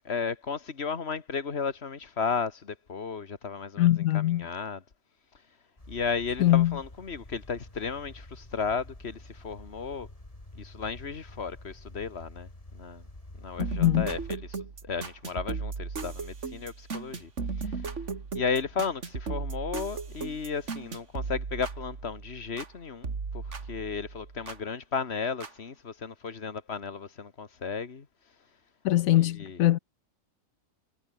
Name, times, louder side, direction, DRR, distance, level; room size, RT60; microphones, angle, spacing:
voice 1, 0.1-4.8 5.9-10.1 10.6-13.0 13.3-14.2 14.5-17.3 17.6-17.9 18.3-28.1 29.2-29.6, left 5 dB, 50° left, 1.9 m, -34 dB
voice 2, 3.8-4.5 6.4-6.8 13.6-14.1 28.8-29.8, left 14 dB, 85° left, 1.0 m, -23 dB
sound 1, 5.8-14.4, left 1 dB, 25° left, 3.7 m, -48 dB
sound 2, 13.6-22.7 23.0-24.6 25.4-25.5, right 4 dB, 60° right, 2.4 m, -36 dB
omnidirectional pair, 1.4 m